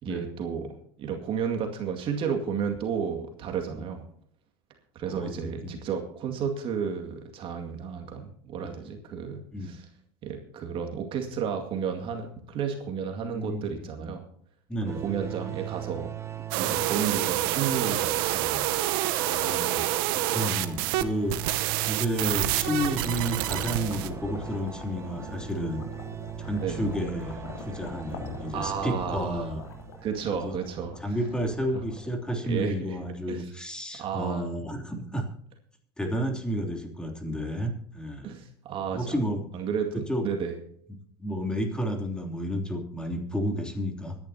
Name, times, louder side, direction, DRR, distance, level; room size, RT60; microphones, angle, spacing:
voice 1, 0.0-4.1 4.9-9.9 10.2-14.2 14.9-16.1 16.5-19.1 26.6-26.8 28.5-29.5 30.0-31.2 32.4-33.0 33.3-33.5 34.0-34.5 38.2-39.1 39.5-40.5, right 7 dB, 45° right, 4 dB, 2.2 m, -32 dB
voice 2, 5.1-5.9 8.8-8.9 9.5-9.8 13.2-14.1 14.7-15.1 16.7-16.9 19.1-21.6 21.9-25.9 26.4-29.6 30.4-30.6 31.0-35.3 36.0-38.3 38.9-39.4 40.1-40.2 41.2-44.2, equal, 5° left, 2 dB, 3.1 m, -31 dB
sound 1, 14.9-30.8, right 10 dB, 25° right, 1.2 m, -40 dB
sound 2, 16.5-21.0 21.3-24.1, right 15 dB, 70° right, 1.0 m, -28 dB
sound 3, 21.4-32.6, left 4 dB, 85° left, 3.0 m, -43 dB
24.5 x 10.5 x 2.9 m, 0.66 s
hypercardioid pair, 95°, 12 cm